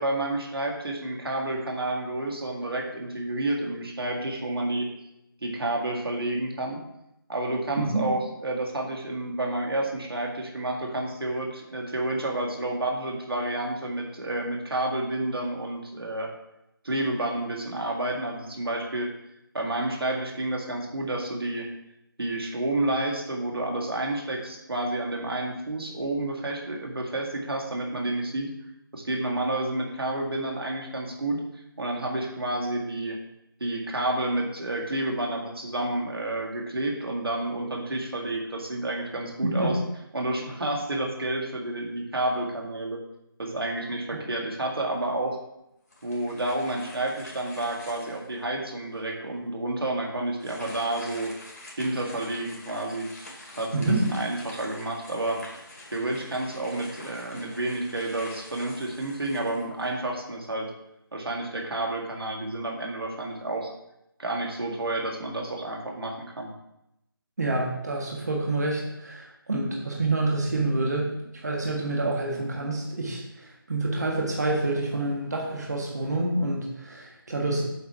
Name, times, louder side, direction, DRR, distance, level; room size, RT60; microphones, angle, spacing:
voice 1, 0.0-4.9 5.4-6.8 7.3-16.3 16.8-19.1 19.5-21.7 22.2-28.5 28.9-33.2 33.6-39.8 40.1-43.0 43.4-45.4 46.0-51.3 51.8-53.3 53.6-55.4 55.9-60.7 61.1-63.7 64.2-66.5, right 2 dB, 90° right, 0 dB, 2.0 m, -30 dB
voice 2, 39.4-39.7 53.7-54.1 67.4-77.6, right 2 dB, 45° right, -1 dB, 1.4 m, -27 dB
sound 1, 45.9-48.4 49.0-49.1 50.3-60.1, left 1 dB, 45° left, 2.3 m, -46 dB
8.0 x 4.3 x 4.8 m, 0.85 s
figure-of-eight pair, 180°, 12 cm